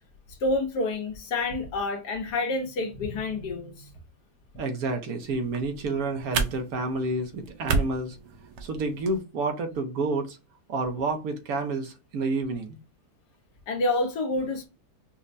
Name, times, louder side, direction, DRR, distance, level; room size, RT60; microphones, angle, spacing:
voice 1, 0.4-3.9 13.7-14.7, left 2 dB, 80° left, 1.5 m, -28 dB
voice 2, 4.6-8.2 8.6-10.4 10.7-12.8, right 3 dB, 70° right, 1.2 m, -29 dB
sound 1, 5.2-9.2, right 4 dB, 90° right, 1.3 m, -32 dB
5.3 x 2.1 x 2.5 m
omnidirectional pair, 1.7 m